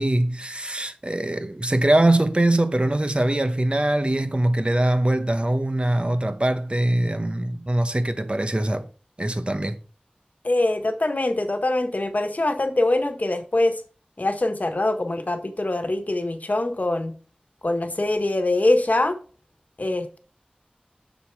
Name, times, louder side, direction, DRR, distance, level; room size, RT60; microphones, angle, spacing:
voice 1, 0.0-8.9 9.2-9.8, right 1 dB, 35° right, 1.0 m, -22 dB
voice 2, 10.4-13.8 14.2-17.1 17.6-19.2 19.8-20.2, left 2 dB, 60° left, 1.3 m, -23 dB
6.8 x 6.3 x 4.7 m
wide cardioid pair, 40°, 3 cm